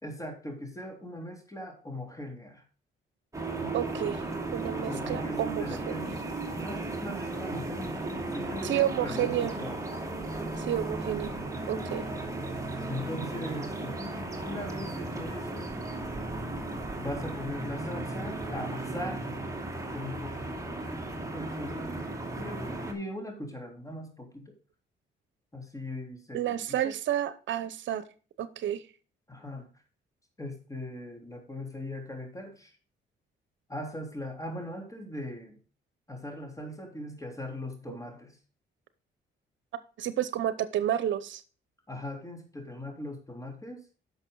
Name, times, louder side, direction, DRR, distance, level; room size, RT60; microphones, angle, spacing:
voice 1, 0.0-2.6 3.5-3.8 4.9-6.2 6.6-9.8 12.9-14.0 14.4-15.7 17.0-19.3 19.9-24.6 25.5-26.9 29.3-29.7 30.4-32.7 33.7-35.6 36.1-38.4 41.9-43.8, left 1 dB, 15° left, 3 dB, 3.4 m, -40 dB
sound 1, 3.3-22.9, right 2 dB, 15° right, 2.5 m, -35 dB
voice 2, 3.7-4.3 4.5-6.0 8.6-9.5 10.6-11.3 11.7-12.0 26.3-28.0 28.4-28.8 37.9-38.0 40.0-41.4, right 11 dB, 70° right, 14 dB, 0.8 m, -30 dB
10.5 x 6.5 x 3.9 m, 0.37 s
cardioid pair, 90°, 20 cm